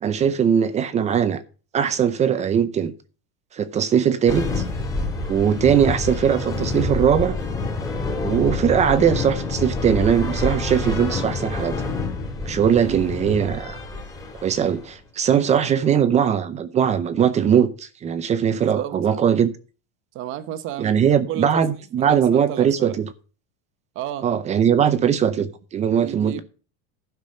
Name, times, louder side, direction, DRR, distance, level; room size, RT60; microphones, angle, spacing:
voice 1, 0.0-1.4 1.7-2.9 3.5-4.6 5.3-7.4 8.2-11.7 12.5-13.8 14.4-19.5 20.8-23.0 24.2-26.4, right 8 dB, 20° right, 0.6 m, -20 dB
sound 1, 4.3-15.0, left 3 dB, 10° left, 2.3 m, -27 dB
voice 2, 12.8-13.1 18.5-19.2 20.1-21.6 22.0-23.0 23.9-24.3 26.0-26.4, right 12 dB, 35° right, 1.0 m, -32 dB
11.5 x 6.1 x 6.5 m
supercardioid pair, 160°, 34 cm